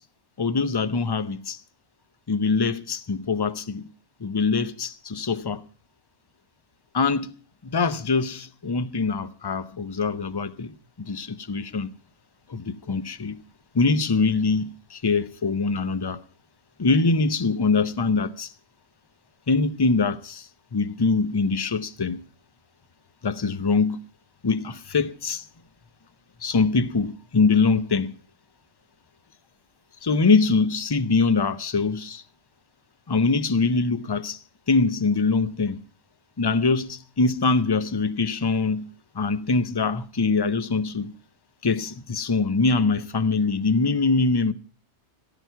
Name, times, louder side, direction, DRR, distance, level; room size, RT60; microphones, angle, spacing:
voice 1, 0.4-1.6 2.3-3.9 4.2-5.6 6.9-7.3 7.6-11.9 12.5-13.4 13.7-16.2 16.8-18.5 19.5-22.2 23.2-24.0 24.4-25.4 26.4-28.2 30.0-32.2 33.1-34.4 34.7-35.8 36.4-41.2 41.6-44.5, left 4 dB, 25° left, 0.6 m, -23 dB
16.0 x 14.5 x 4.6 m
omnidirectional pair, 1.2 m